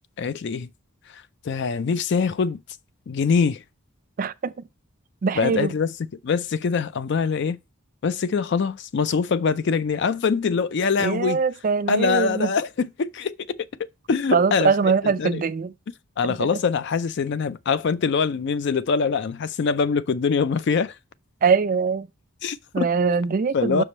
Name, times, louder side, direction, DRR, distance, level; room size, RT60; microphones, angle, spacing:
voice 1, 0.2-0.7 1.4-2.6 3.1-3.6 5.4-5.9 6.2-7.6 8.0-11.4 11.9-13.7 14.1-15.4 16.2-20.9 22.4-22.9 23.5-23.8, left 5 dB, 55° left, 0.4 m, -23 dB
voice 2, 4.2-4.5 5.2-5.7 11.0-12.5 14.3-15.7 16.2-16.4 21.4-22.1 22.7-23.8, right 5 dB, 40° right, 0.3 m, -22 dB
5.9 x 4.8 x 4.2 m
head